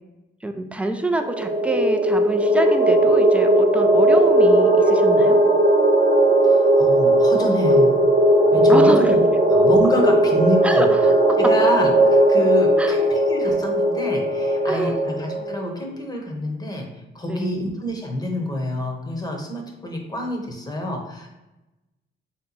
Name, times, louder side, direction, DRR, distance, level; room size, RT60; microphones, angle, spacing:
voice 1, 0.4-5.4 8.7-9.2 10.6-11.4 12.8-13.1 14.7-15.0 17.3-17.7, right 1 dB, 5° right, 6 dB, 0.4 m, -26 dB
sound 1, 1.2-15.5, right 1 dB, 40° right, 0.8 m, -17 dB
voice 2, 6.4-7.9 8.5-9.2 9.5-10.9 11.4-16.9 17.1-21.3, left 1 dB, 20° left, 1 dB, 0.9 m, -27 dB
3.4 x 2.9 x 3.9 m, 0.99 s
cardioid pair, 90°, 20 cm